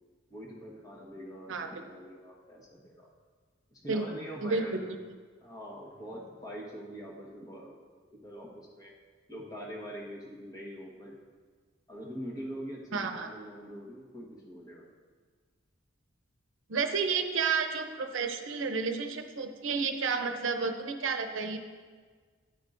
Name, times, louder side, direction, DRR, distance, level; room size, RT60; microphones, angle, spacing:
voice 1, 0.3-3.1 3.7-5.0 5.4-7.7 8.1-8.9 9.3-11.2 11.9-14.8, equal, 20° left, -3 dB, 1.3 m, -43 dB
voice 2, 12.9-13.3 16.7-21.6, right 5 dB, 90° right, 7 dB, 0.7 m, -31 dB
9.5 x 9.1 x 2.6 m, 1.6 s
head